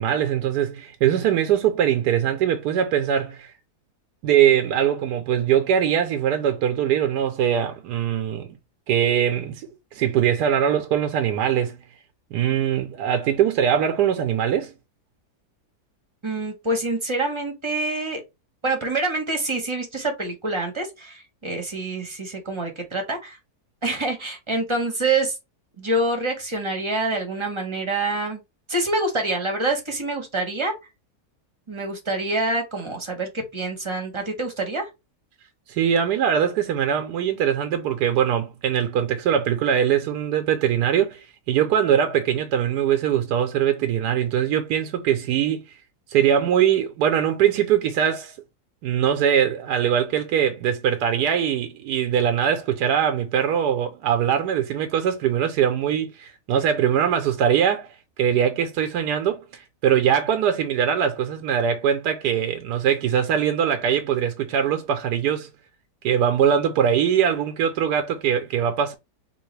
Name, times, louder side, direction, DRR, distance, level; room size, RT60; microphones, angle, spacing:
voice 1, 0.0-3.5 4.2-8.5 8.9-11.8 12.3-14.7 35.7-45.6 46.1-48.3 48.8-57.9 58.2-65.5 66.0-68.9, right 9 dB, 85° right, 1.2 m, -22 dB
voice 2, 16.2-18.2 18.6-23.4 23.8-25.4 25.8-28.4 28.7-30.7 31.7-34.9, right 2 dB, 25° right, 0.8 m, -26 dB
3.8 x 2.9 x 3.1 m
omnidirectional pair, 1.7 m